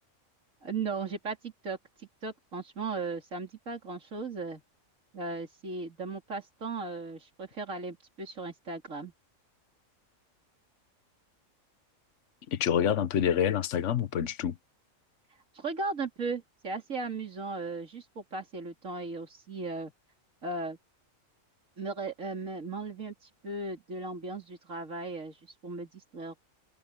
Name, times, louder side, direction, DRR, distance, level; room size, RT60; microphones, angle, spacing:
voice 1, 0.6-4.6 5.1-9.1 15.5-19.9 20.4-20.8 21.8-26.4, right 3 dB, 75° right, 3.5 m, -37 dB
voice 2, 12.5-14.6, left 8 dB, 70° left, 1.3 m, -27 dB
omnidirectional pair, 1.4 m